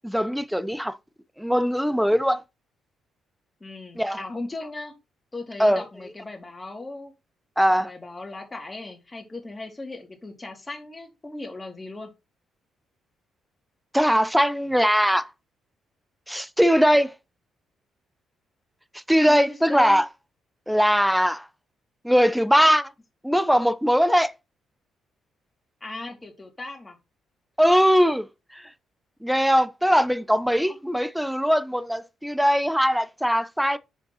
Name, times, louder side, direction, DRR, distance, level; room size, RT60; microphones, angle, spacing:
voice 1, 0.0-1.0 1.4-2.4 4.0-4.2 5.6-5.8 7.6-7.9 13.9-15.3 16.3-17.1 19.1-20.0 20.7-21.5 22.0-22.9 23.2-24.3 27.6-28.3 28.5-28.6 29.2-33.8, equal, ahead, 0.7 m, -20 dB
voice 2, 3.6-5.0 5.3-7.1 7.7-12.1 19.3-20.0 25.8-27.0 30.7-30.8, left 2 dB, 20° left, 2.7 m, -37 dB
7.5 x 5.1 x 4.2 m
cardioid pair, 90°, 0 cm